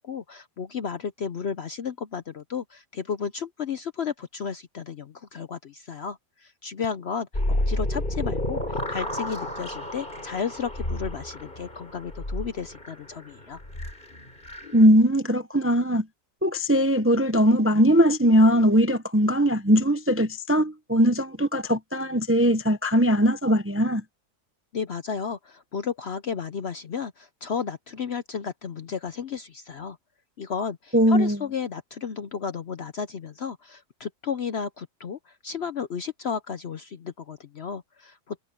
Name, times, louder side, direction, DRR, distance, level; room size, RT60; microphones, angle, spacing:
voice 1, 0.0-13.6 24.7-30.0 30.4-38.4, left 6 dB, 55° left, 0.8 m, -33 dB
sound 1, 7.3-14.9, left 1 dB, 30° left, 6.1 m, -31 dB
voice 2, 14.7-16.1 16.4-24.0 30.9-31.4, equal, 15° right, 0.5 m, -20 dB
omnidirectional pair, 1.7 m